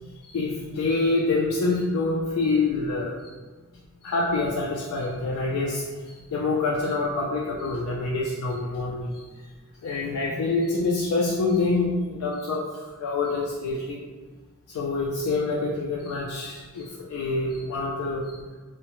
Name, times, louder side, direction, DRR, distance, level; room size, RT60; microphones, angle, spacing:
voice 1, 0.3-3.2 4.0-9.2 9.8-14.0 14.7-18.4, left 3 dB, 80° left, -3 dB, 0.3 m, -26 dB
2.7 x 2.0 x 2.9 m, 1.3 s
head